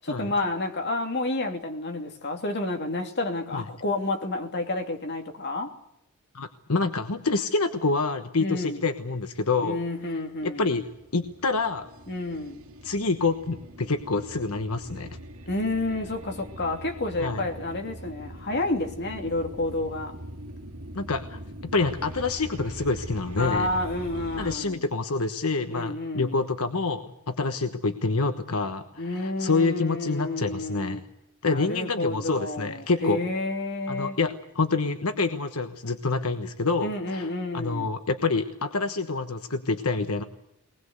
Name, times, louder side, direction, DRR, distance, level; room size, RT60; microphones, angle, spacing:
voice 1, 0.0-5.7 8.4-8.8 9.6-10.6 12.1-12.6 15.5-20.1 23.4-24.8 25.7-26.4 29.0-31.0 31.4-34.2 36.8-37.9, left 2 dB, 50° left, 2.8 m, -30 dB
voice 2, 6.3-9.8 10.4-10.9 11.1-11.9 12.8-15.2 17.2-17.4 20.9-21.4 21.7-23.7 24.4-31.0 31.4-33.2 33.9-40.2, left 3 dB, 80° left, 1.3 m, -27 dB
sound 1, 9.8-24.6, right 1 dB, 70° right, 2.4 m, -42 dB
22.5 x 20.0 x 8.1 m
head